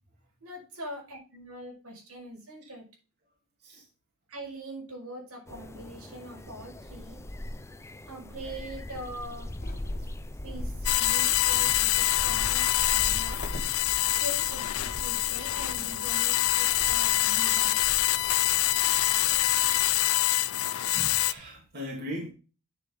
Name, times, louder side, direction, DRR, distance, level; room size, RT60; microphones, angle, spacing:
voice 1, 0.4-2.9 4.3-7.2 8.0-9.5 10.4-13.5 14.1-17.8, equal, 85° right, -1 dB, 5.2 m, -42 dB
sound 1, 5.5-20.0, left 1 dB, 15° left, 0.6 m, -40 dB
sound 2, 8.4-13.8, left 1 dB, 45° left, 1.8 m, -45 dB
sound 3, 10.9-21.3, left 15 dB, 70° left, 0.5 m, -25 dB
voice 2, 20.6-22.3, equal, 50° right, -2 dB, 2.7 m, -39 dB
9.2 x 6.9 x 3.6 m, 0.35 s
head